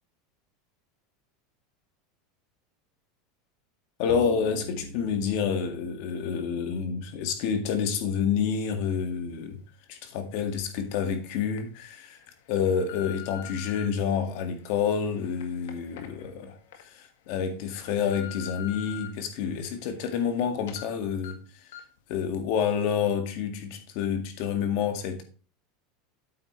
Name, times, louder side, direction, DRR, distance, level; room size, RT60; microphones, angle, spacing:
voice 1, 4.0-9.6 9.9-12.2 12.5-21.4 22.1-25.2, left 7 dB, 60° left, 2.0 m, -28 dB
sound 1, 4.1-7.0, left 3 dB, 35° left, 2.1 m, -43 dB
sound 2, 10.6-10.7 11.3-11.6 12.2-13.9 14.5-16.8 17.2-17.3 17.8-19.1 19.5-20.4 20.7-20.8 21.2-21.3 21.7-22.0 22.3-22.4, left 11 dB, 85° left, 1.8 m, -44 dB
8.9 x 8.0 x 3.2 m
supercardioid pair, 150°, 0 cm